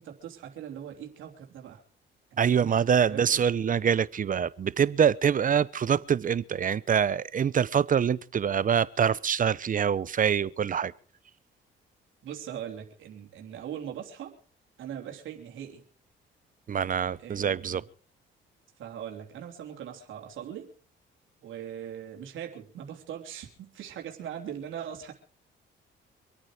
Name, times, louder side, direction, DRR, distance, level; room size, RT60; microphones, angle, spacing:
voice 1, 0.0-1.8 2.3-3.3 12.2-14.4 14.8-15.8 17.2-17.8 18.8-20.7 21.4-25.1, right 9 dB, 80° right, 3.2 m, -40 dB
voice 2, 2.4-10.9 16.7-17.8, right 7 dB, 45° right, 0.8 m, -25 dB
26.0 x 9.0 x 5.0 m
cardioid pair, 90°, 20 cm